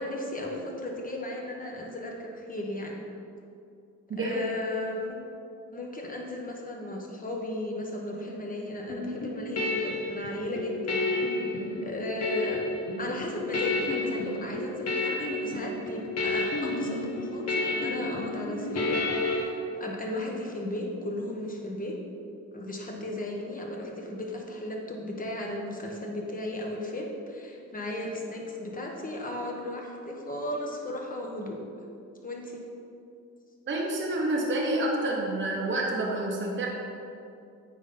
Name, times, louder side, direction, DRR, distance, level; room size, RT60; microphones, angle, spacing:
voice 1, 0.0-3.0 4.2-5.2 5.7-11.1 11.4-12.6 13.0-21.9 22.5-31.6 32.2-32.6, left 1 dB, 30° left, 0 dB, 1.3 m, -35 dB
voice 2, 4.1-4.5 33.7-36.7, right 1 dB, 40° right, -2 dB, 1.1 m, -28 dB
sound 1, 8.9-19.4, left 2 dB, 55° left, 1.2 m, -30 dB
9.2 x 4.1 x 4.0 m, 2.5 s
cardioid pair, 90°, 30 cm